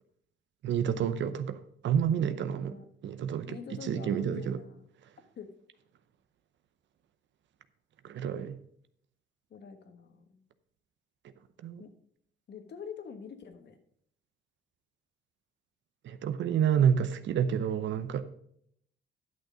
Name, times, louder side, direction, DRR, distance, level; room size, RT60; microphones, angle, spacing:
voice 1, 0.6-2.8 3.0-4.6 8.0-8.6 11.6-11.8 16.0-18.2, right 8 dB, 70° right, 11 dB, 0.7 m, -29 dB
voice 2, 2.5-2.8 3.5-4.8 5.4-5.5 9.5-10.4 11.8-11.9 12.5-13.8, left 6 dB, 60° left, 8 dB, 1.5 m, -45 dB
11.0 x 6.4 x 5.0 m, 0.68 s
cardioid pair, 90°, 20 cm